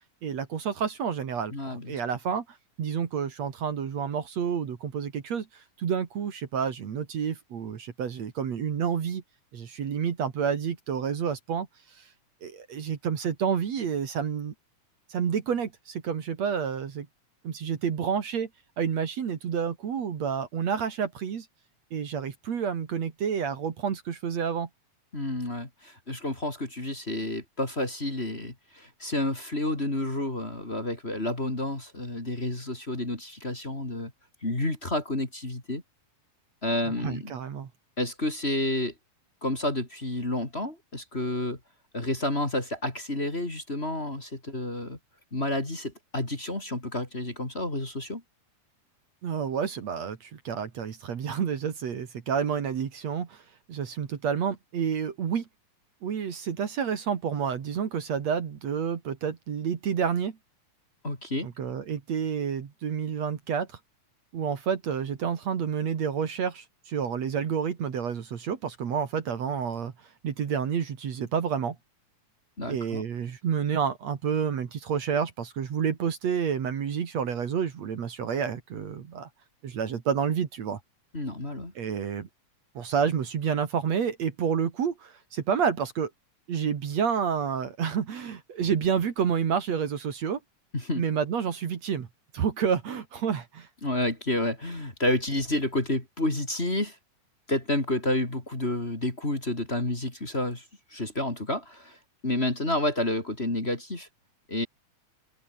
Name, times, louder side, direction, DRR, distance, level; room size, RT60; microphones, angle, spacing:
voice 1, 0.2-2.4 2.8-9.2 9.5-11.7 12.0-12.1 12.4-14.5 15.1-17.1 17.4-18.5 18.8-21.5 21.9-24.7 37.0-37.7 49.2-53.4 53.7-55.5 56.0-60.4 61.4-63.7 64.3-69.9 70.2-71.8 72.7-79.3 79.6-80.8 81.8-82.3 82.7-86.1 86.5-90.4 91.0-92.1 92.3-93.7, right 7 dB, 60° right, 3.2 m, -29 dB
voice 2, 1.5-2.0 25.1-34.1 34.4-35.8 36.6-37.3 38.0-38.9 39.4-41.6 41.9-45.0 45.3-48.2 61.0-61.5 72.6-73.0 81.1-81.7 90.7-91.0 93.8-97.0 97.5-100.7 100.9-102.0 102.2-104.1 104.5-104.7, left 1 dB, 20° left, 3.5 m, -30 dB
open air
omnidirectional pair, 3.6 m